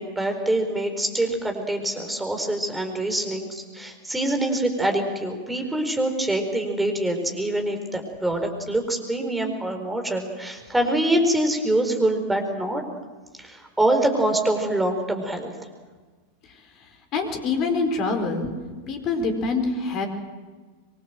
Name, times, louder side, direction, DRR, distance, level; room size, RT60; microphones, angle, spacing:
voice 1, 0.0-12.8 13.4-15.5, right 1 dB, 5° right, 4 dB, 4.5 m, -25 dB
voice 2, 17.1-18.5 18.9-20.1, left 3 dB, 35° left, 6 dB, 4.7 m, -25 dB
25.0 x 23.0 x 7.8 m, 1.4 s
figure-of-eight pair, 90°, 0 cm